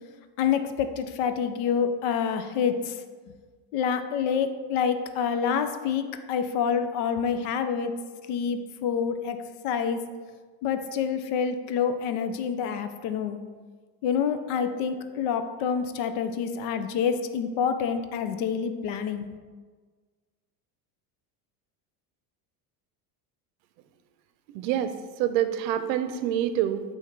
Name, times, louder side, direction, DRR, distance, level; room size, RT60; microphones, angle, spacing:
voice 1, 0.4-3.0 3.7-8.0 8.3-9.4 9.6-10.1 10.6-13.4 14.0-19.4, left 7 dB, 70° left, 9 dB, 0.7 m, -27 dB
voice 2, 24.5-24.9 25.2-26.8, right 11 dB, 90° right, 11 dB, 0.6 m, -26 dB
8.0 x 2.8 x 4.5 m, 1.4 s
cardioid pair, 140°, 48 cm